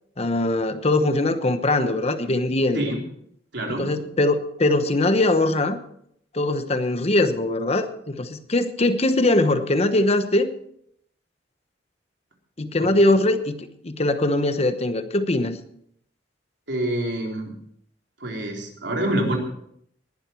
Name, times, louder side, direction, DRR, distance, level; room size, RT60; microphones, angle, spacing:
voice 1, 0.2-2.9 3.7-5.8 6.3-10.5 12.6-15.6, left 2 dB, 35° left, 10 dB, 1.0 m, -21 dB
voice 2, 3.5-3.9 12.8-12.9 16.7-17.5 18.2-19.4, right 1 dB, 75° right, 1 dB, 3.8 m, -26 dB
19.5 x 11.5 x 4.5 m, 0.70 s
head